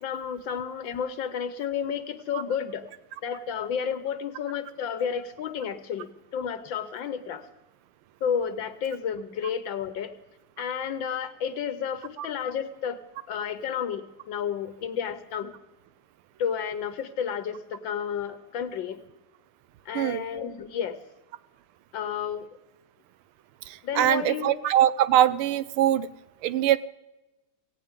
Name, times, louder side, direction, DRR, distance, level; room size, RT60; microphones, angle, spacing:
voice 1, 0.0-2.9 3.2-7.5 8.2-10.1 10.6-13.0 13.3-15.5 16.4-19.0 19.8-21.0 21.9-22.5 23.8-24.6, left 7 dB, 65° left, 11 dB, 1.6 m, -31 dB
voice 2, 23.7-26.1 26.4-26.8, right 12 dB, 85° right, 16 dB, 1.6 m, -22 dB
17.5 x 16.5 x 3.7 m, 1.0 s
omnidirectional pair, 2.3 m